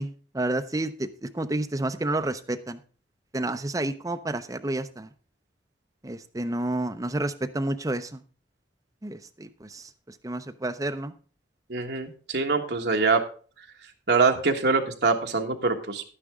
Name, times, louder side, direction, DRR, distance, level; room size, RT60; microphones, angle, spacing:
voice 1, 0.0-2.8 3.3-5.1 6.0-8.2 9.0-11.1, right 1 dB, 20° right, 8 dB, 0.6 m, -30 dB
voice 2, 11.7-13.2 14.1-16.0, right 4 dB, 65° right, 3 dB, 1.4 m, -24 dB
11.0 x 9.9 x 3.6 m, 0.39 s
head